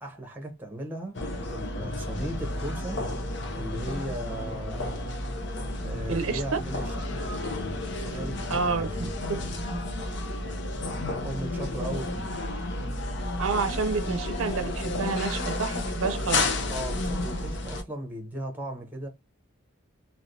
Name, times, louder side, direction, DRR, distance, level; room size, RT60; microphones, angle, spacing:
voice 1, 0.0-1.2 1.5-3.0 3.6-5.1 5.8-6.9 8.0-8.9 11.2-12.3 16.7-19.1, right 1 dB, 10° right, 0.9 m, -37 dB
sound 1, 1.1-17.8, left 2 dB, 55° left, 0.7 m, -31 dB
voice 2, 6.1-6.4 8.5-8.9 9.3-9.4 9.7-9.8 13.4-16.4, right 4 dB, 80° right, 0.6 m, -29 dB
3.3 x 2.8 x 2.6 m
head